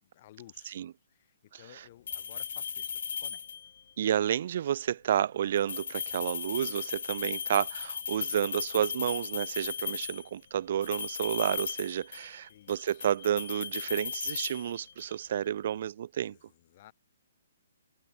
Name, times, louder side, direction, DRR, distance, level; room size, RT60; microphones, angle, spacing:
voice 1, 0.0-0.8 1.1-3.4 12.5-13.1 16.2-16.9, left 14 dB, 40° left, 4.1 m, -56 dB
sound 1, 2.1-3.8 5.6-10.3 10.8-12.4 12.7-15.2, left 7 dB, 65° left, 1.2 m, -37 dB
voice 2, 4.0-16.4, right 10 dB, 50° right, 1.3 m, -30 dB
hypercardioid pair, 145°, 0 cm